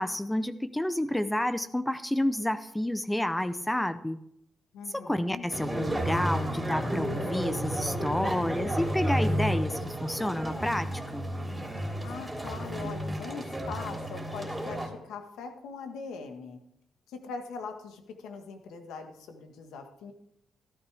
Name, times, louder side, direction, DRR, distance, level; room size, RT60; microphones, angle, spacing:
voice 1, 0.0-4.2 4.9-11.3, left 1 dB, 10° left, 12 dB, 0.8 m, -30 dB
voice 2, 4.7-5.5 12.0-16.6 17.1-20.1, left 5 dB, 85° left, 5 dB, 1.6 m, -41 dB
sound 1, 5.5-14.9, right 1 dB, 5° right, 3.2 m, -32 dB
13.5 x 12.0 x 3.5 m, 0.77 s
cardioid pair, 65°, 0 cm